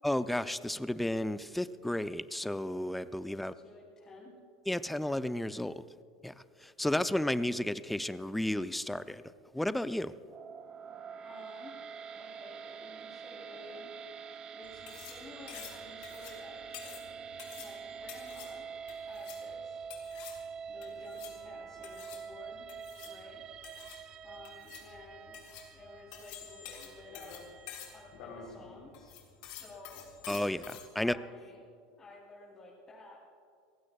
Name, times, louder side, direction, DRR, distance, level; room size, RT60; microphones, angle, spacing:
voice 1, 0.0-3.5 4.7-5.8 6.2-6.3 6.8-9.2 9.5-10.1 30.3-31.2, left 1 dB, 5° left, 14 dB, 0.5 m, -32 dB
voice 2, 3.4-4.3 11.2-11.8 12.1-13.9 14.5-17.1 17.6-18.7 18.9-19.8 20.7-22.7 23.0-23.4 24.2-25.4 25.7-27.4 27.9-29.1 29.4-30.1 31.0-31.6 32.0-33.2, left 2 dB, 25° left, -5 dB, 3.6 m, -52 dB
sound 1, 10.2-28.5, right 6 dB, 35° right, 0.7 m, -46 dB
sound 2, 14.6-30.9, left 9 dB, 60° left, 3.5 m, -49 dB
29.5 x 15.5 x 2.4 m, 2.4 s
hypercardioid pair, 80°, 2 cm